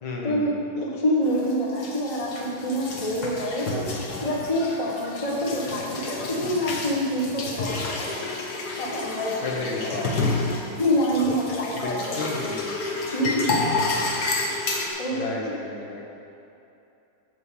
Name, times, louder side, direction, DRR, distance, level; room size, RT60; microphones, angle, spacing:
voice 1, 0.0-0.6 9.4-10.1 11.7-12.7 15.1-16.0, left 3 dB, 70° left, -2 dB, 2.0 m, -32 dB
voice 2, 0.8-2.3 2.6-3.9 4.2-8.3 8.8-9.9 10.7-12.3 13.1-13.5 15.0-15.2, equal, 20° left, -3 dB, 1.1 m, -26 dB
sound 1, 1.2-14.9, left 3 dB, 55° left, 1.5 m, -30 dB
8.4 x 6.3 x 7.4 m, 2.8 s
omnidirectional pair, 2.3 m